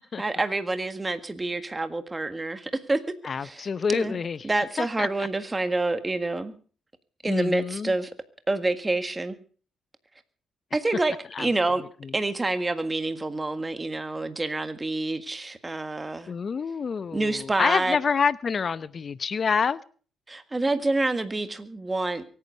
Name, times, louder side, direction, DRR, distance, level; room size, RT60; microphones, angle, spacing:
voice 1, 0.2-3.0 3.4-4.2 4.4-6.5 7.2-8.1 8.5-9.3 10.7-11.8 12.1-16.3 17.1-18.0 20.3-22.2, right 2 dB, 20° right, 1.7 m, -27 dB
voice 2, 3.2-4.5 4.8-5.1 7.3-7.9 11.3-11.5 12.0-12.1 16.3-19.8, left 6 dB, 45° left, 0.7 m, -27 dB
23.5 x 9.6 x 5.3 m
cardioid pair, 90°, 0 cm